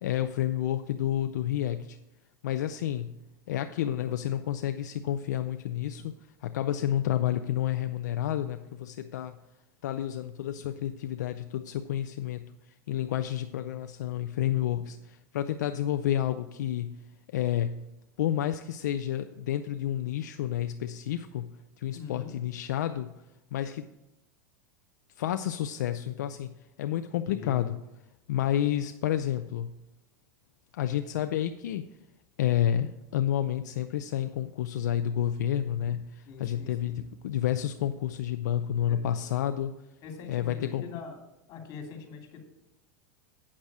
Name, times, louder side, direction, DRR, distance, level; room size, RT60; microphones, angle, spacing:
voice 1, 0.0-2.0 2.4-3.1 3.5-6.1 6.4-9.4 9.8-12.4 12.9-17.0 17.3-17.8 18.2-21.5 21.8-23.1 23.5-23.9 25.2-26.5 26.8-27.8 28.3-29.7 30.7-31.8 32.4-39.7 40.3-40.8, left 11 dB, 80° left, 9 dB, 0.5 m, -30 dB
voice 2, 21.9-22.3 27.3-27.7 36.3-37.0 38.9-39.0 40.0-41.2 41.5-42.4, left 5 dB, 45° left, 2 dB, 2.8 m, -43 dB
8.7 x 6.3 x 6.0 m, 0.92 s
hypercardioid pair, 110°, 9 cm